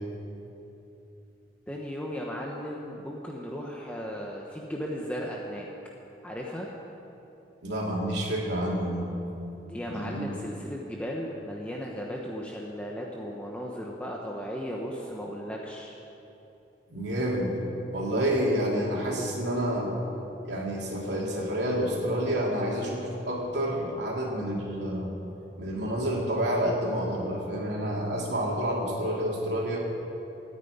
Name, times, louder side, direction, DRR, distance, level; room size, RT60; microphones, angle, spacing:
voice 1, 1.7-5.7 6.2-6.7 9.6-16.0, equal, 10° left, -2 dB, 1.1 m, -36 dB
voice 2, 7.6-9.1 9.9-10.4 16.9-17.6 17.9-20.0 20.4-25.1 25.6-29.8, equal, 70° right, -3 dB, 3.3 m, -29 dB
13.5 x 9.6 x 9.4 m, 2.9 s
head